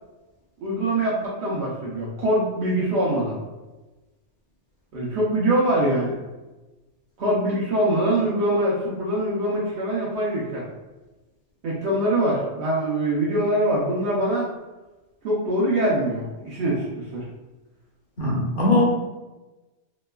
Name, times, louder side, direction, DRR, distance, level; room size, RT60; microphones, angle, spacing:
voice 1, 0.6-3.4 4.9-6.2 7.2-10.6 11.6-14.5 15.2-17.2, right 1 dB, 70° right, -6 dB, 0.9 m, -23 dB
voice 2, 18.2-18.8, left 2 dB, 55° left, -4 dB, 0.9 m, -20 dB
3.0 x 2.2 x 2.2 m, 1.1 s
omnidirectional pair, 1.2 m